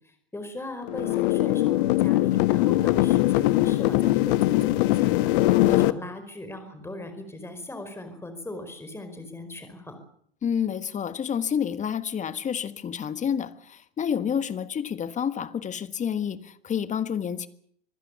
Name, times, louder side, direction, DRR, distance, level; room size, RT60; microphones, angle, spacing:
voice 1, 0.3-5.2 5.7-10.0, left 2 dB, 10° left, 4.8 m, -38 dB
sound 1, 0.9-5.9, left 17 dB, 55° left, 1.1 m, -21 dB
voice 2, 5.5-5.8 10.4-17.5, left 8 dB, 25° left, 1.5 m, -29 dB
25.5 x 15.5 x 8.3 m
figure-of-eight pair, 90°, 31 cm